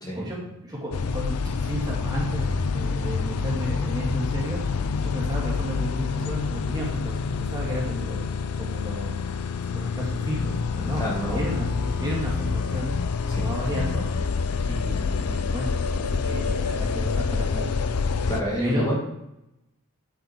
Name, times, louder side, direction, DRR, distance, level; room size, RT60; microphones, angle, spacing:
voice 1, 0.1-8.3 8.6-14.1 14.7-17.8 18.6-18.9, equal, 20° right, -4 dB, 2.2 m, -33 dB
sound 1, 0.9-18.4, left 5 dB, 85° left, 0.5 m, -27 dB
voice 2, 11.0-11.4 13.3-13.5 18.3-18.9, equal, 15° left, -4 dB, 2.3 m, -28 dB
9.2 x 7.2 x 4.5 m, 0.87 s
head